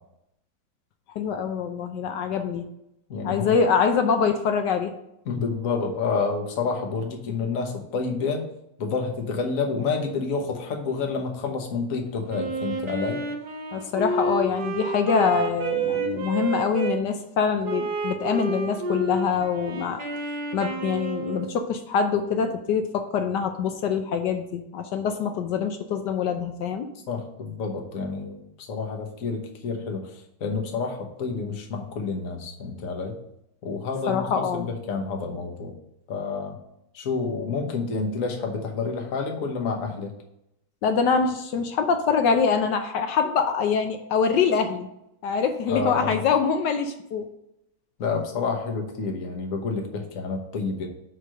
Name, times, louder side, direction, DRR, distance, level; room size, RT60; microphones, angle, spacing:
voice 1, 1.2-2.7 3.2-4.9 13.7-20.0 20.5-26.9 34.1-34.7 40.8-44.9 45.2-47.3, left 6 dB, 70° left, 6 dB, 1.1 m, -24 dB
voice 2, 3.1-3.6 5.2-8.5 8.8-13.2 27.1-33.2 33.6-35.7 36.1-36.6 36.9-40.1 45.7-46.2 48.0-50.9, left 4 dB, 50° left, 2 dB, 1.2 m, -29 dB
Wind instrument woodwind instrument, 12.3-17.0 17.6-21.6, right 3 dB, 55° right, 1.4 m, -29 dB
5.1 x 4.7 x 6.2 m, 0.81 s
omnidirectional pair, 2.3 m